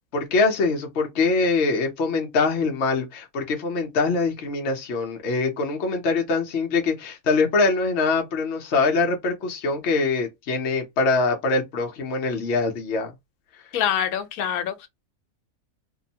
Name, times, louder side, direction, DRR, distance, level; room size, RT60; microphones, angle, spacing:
voice 1, 0.1-13.1, left 3 dB, 60° left, 0.8 m, -23 dB
voice 2, 13.7-14.9, left 9 dB, 80° left, 1.1 m, -25 dB
2.9 x 2.0 x 2.7 m
omnidirectional pair, 1.5 m